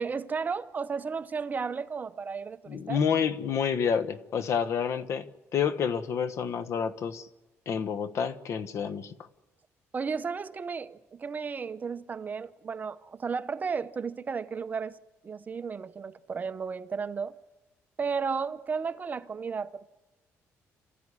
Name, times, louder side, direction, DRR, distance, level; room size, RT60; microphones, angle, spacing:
voice 1, 0.0-3.0 9.9-15.0 15.2-17.4 18.0-19.9, right 5 dB, 30° right, 0.8 m, -33 dB
voice 2, 2.7-7.3 7.7-9.1, left 7 dB, 60° left, 1.3 m, -29 dB
27.0 x 14.5 x 9.9 m
cardioid pair, 115°, 6 cm